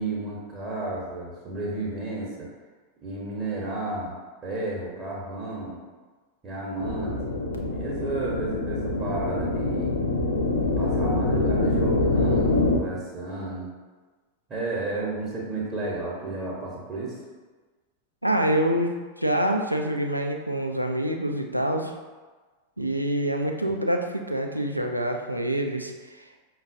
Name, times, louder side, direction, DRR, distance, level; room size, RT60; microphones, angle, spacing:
voice 1, 0.0-2.5 3.0-4.1 4.4-5.8 6.4-7.4 7.7-9.9 10.6-13.7 14.5-17.2 22.8-22.9, right 2 dB, 30° right, -6 dB, 0.8 m, -32 dB
sound 1, 6.8-12.8, left 2 dB, 70° left, 0.4 m, -25 dB
voice 2, 18.2-21.9 22.8-26.4, right 1 dB, 90° right, 3 dB, 0.3 m, -26 dB
5.3 x 2.2 x 2.6 m, 1.3 s
figure-of-eight pair, 90°, 0 cm